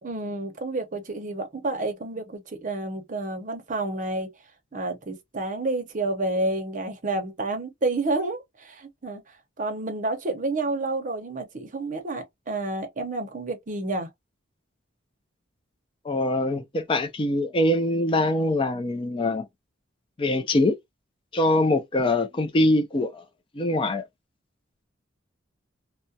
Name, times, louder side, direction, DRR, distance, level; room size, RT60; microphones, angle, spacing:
voice 1, 0.0-4.3 4.7-9.2 9.6-14.1, right 2 dB, 40° right, 0.7 m, -29 dB
voice 2, 16.0-19.5 20.2-20.8 21.3-23.2 23.5-24.0, left 1 dB, 25° left, 0.4 m, -23 dB
2.3 x 2.1 x 2.6 m
head